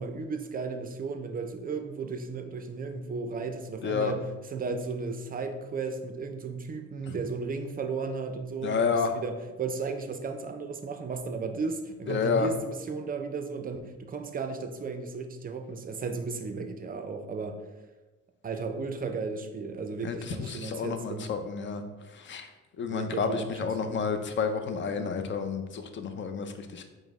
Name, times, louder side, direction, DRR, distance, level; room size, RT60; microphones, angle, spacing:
voice 1, 0.0-17.6 18.4-21.3 22.9-24.1, right 4 dB, 30° right, 6 dB, 0.4 m, -35 dB
voice 2, 3.8-4.1 7.1-7.2 8.6-9.1 12.1-12.5 20.0-21.8 22.1-22.5 22.8-26.8, left 5 dB, 40° left, 7 dB, 0.5 m, -30 dB
4.9 x 2.1 x 3.5 m, 1.2 s
cardioid pair, 90°, 30 cm